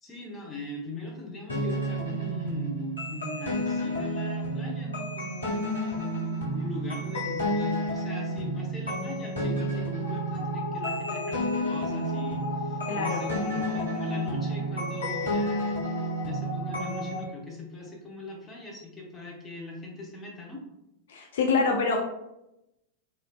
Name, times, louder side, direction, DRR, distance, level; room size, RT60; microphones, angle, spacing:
voice 1, 0.0-5.7 6.5-20.6, left 3 dB, 20° left, -1 dB, 0.7 m, -40 dB
sound 1, 1.5-17.2, equal, 80° left, 0.9 m, -30 dB
voice 2, 12.9-13.2 21.1-22.0, left 4 dB, 60° left, 2 dB, 0.4 m, -26 dB
3.1 x 2.7 x 2.3 m, 0.88 s
figure-of-eight pair, 90°, 0 cm